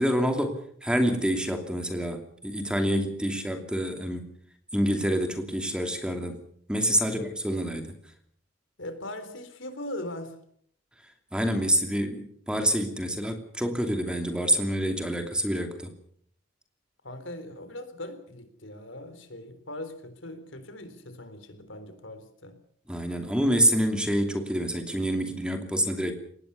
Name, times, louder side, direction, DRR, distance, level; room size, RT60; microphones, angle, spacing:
voice 1, 0.0-4.3 4.7-6.4 6.7-8.0 11.3-15.9 22.9-26.2, equal, 5° right, 5 dB, 2.8 m, -27 dB
voice 2, 8.8-10.4 17.0-22.5, left 1 dB, 75° left, 10 dB, 3.9 m, -40 dB
23.5 x 19.5 x 6.9 m, 0.64 s
head